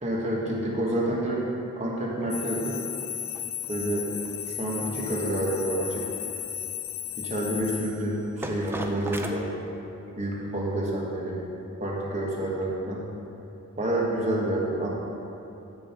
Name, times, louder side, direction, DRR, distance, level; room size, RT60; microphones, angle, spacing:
voice 1, 0.0-1.4 1.8-2.8 3.7-4.1 4.6-6.0 7.2-9.5 10.2-11.4 11.8-13.1 13.8-14.9, right 1 dB, 30° right, -3 dB, 1.6 m, -28 dB
sound 1, 2.2-9.3, right 1 dB, 10° right, 0.5 m, -41 dB
sound 2, 2.3-8.1, left 10 dB, 65° left, 0.5 m, -35 dB
15.0 x 5.6 x 4.5 m, 2.8 s
head